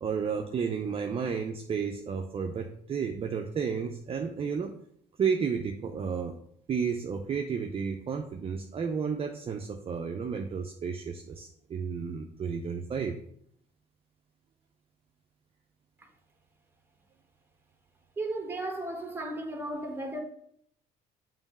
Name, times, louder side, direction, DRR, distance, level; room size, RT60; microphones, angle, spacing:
voice 1, 0.0-4.7 5.2-6.4 6.7-13.2, right 6 dB, 35° right, 0.5 m, -32 dB
voice 2, 18.2-20.2, right 2 dB, 15° right, 1.1 m, -35 dB
6.9 x 3.1 x 5.4 m
cardioid pair, 110°, 17 cm